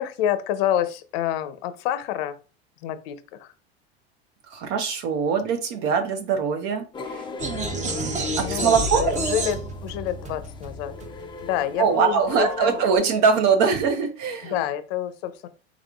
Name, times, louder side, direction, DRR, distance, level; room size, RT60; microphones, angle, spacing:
voice 1, 0.0-2.4 2.8-3.5 8.3-10.9 11.4-12.7 14.4-15.5, left 11 dB, 65° left, 12 dB, 0.5 m, -28 dB
voice 2, 4.5-7.2 7.7-8.2 8.5-9.2 11.8-14.6, right 6 dB, 60° right, 6 dB, 0.7 m, -22 dB
sound 1, 6.9-13.0, left 4 dB, 15° left, 0.4 m, -36 dB
sound 2, 7.4-11.6, right 2 dB, 20° right, 0.7 m, -30 dB
3.6 x 3.5 x 2.3 m, 0.34 s
hypercardioid pair, 95°, 33 cm